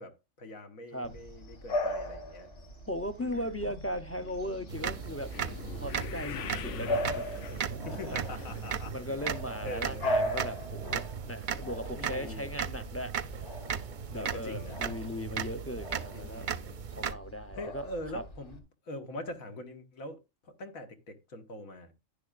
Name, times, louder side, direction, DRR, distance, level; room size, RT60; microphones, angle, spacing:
voice 1, 0.0-2.5 3.2-3.6 6.2-6.7 7.8-9.1 9.6-10.1 11.9-12.5 14.1-14.8 16.1-16.8 17.5-21.9, left 1 dB, 85° left, 2.0 m, -43 dB
Bark / Bird vocalization bird call bird song, 1.0-18.6, equal, 45° left, 3.0 m, -39 dB
voice 2, 2.9-5.3 5.7-7.4 7.7-8.2 8.9-13.1 14.1-16.5 16.9-17.9 18.1-18.2, equal, 15° left, 0.5 m, -38 dB
sound 1, 3.2-9.6 9.9-10.3 10.9-11.0 11.3-11.4, left 8 dB, 65° left, 1.0 m, -45 dB
sound 2, 4.7-17.1, right 7 dB, 50° right, 0.6 m, -37 dB
10.5 x 10.5 x 2.5 m
omnidirectional pair, 1.4 m